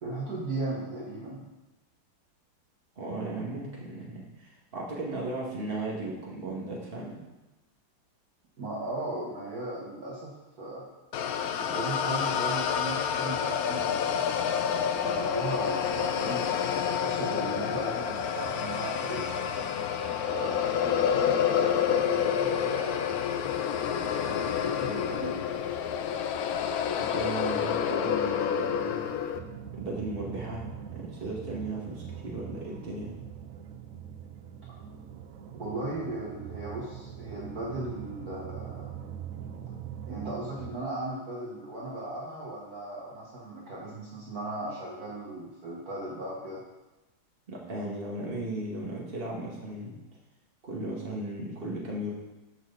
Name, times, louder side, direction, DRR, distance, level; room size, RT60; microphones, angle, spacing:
voice 1, 0.0-1.5 8.6-10.9 11.6-14.5 14.9-16.5 16.9-19.3 20.2-21.0 21.9-23.1 23.8-25.4 35.5-38.9 40.1-46.6, right 2 dB, 50° right, -5 dB, 1.8 m, -37 dB
voice 2, 3.0-7.2 27.0-29.1 29.7-33.1 47.5-50.0 50.6-52.1, right 2 dB, 30° right, -3 dB, 2.0 m, -36 dB
sound 1, 11.1-29.4, left 8 dB, 75° left, 0.8 m, -28 dB
sound 2, 29.3-40.8, right 9 dB, 85° right, 0.7 m, -42 dB
12.5 x 6.0 x 4.0 m, 1.0 s
omnidirectional pair, 2.2 m